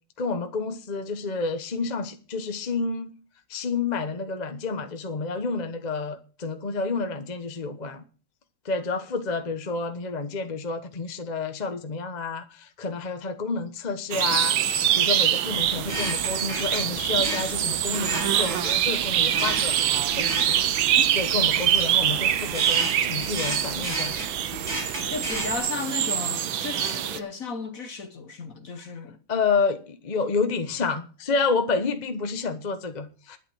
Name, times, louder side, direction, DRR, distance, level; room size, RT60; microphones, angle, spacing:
voice 1, 0.2-3.1 3.5-8.0 8.6-14.6 14.9-19.8 20.2-24.2 29.3-33.4, left 4 dB, 30° left, 0.9 m, -29 dB
sound 1, 14.1-27.2, right 10 dB, 75° right, 1.6 m, -24 dB
sound 2, 15.5-25.6, right 2 dB, 45° right, 4.4 m, -35 dB
voice 2, 25.1-29.2, left 4 dB, 50° left, 1.4 m, -34 dB
11.5 x 9.7 x 6.2 m
omnidirectional pair, 2.2 m